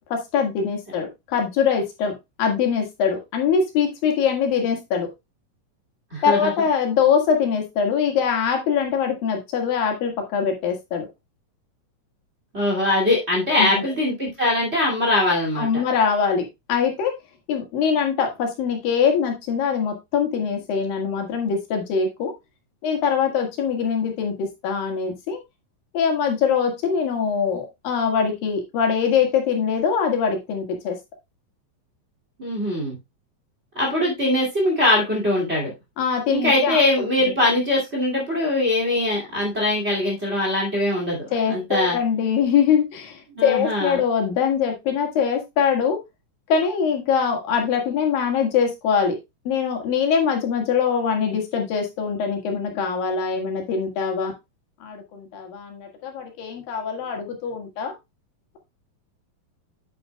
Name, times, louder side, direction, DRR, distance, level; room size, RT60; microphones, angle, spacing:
voice 1, 0.1-2.1 2.4-5.1 6.2-11.1 13.6-13.8 15.6-17.1 17.5-22.3 22.8-25.4 25.9-31.0 36.0-36.8 41.3-46.0 46.5-49.2 49.5-54.3 54.8-57.9, left 6 dB, 80° left, 3 dB, 3.6 m, -23 dB
voice 2, 6.1-6.5 12.5-15.8 32.4-33.0 33.7-35.7 36.3-42.0 43.4-44.0, left 1 dB, 20° right, -2 dB, 2.3 m, -22 dB
8.5 x 8.5 x 2.3 m, 0.22 s
omnidirectional pair, 4.0 m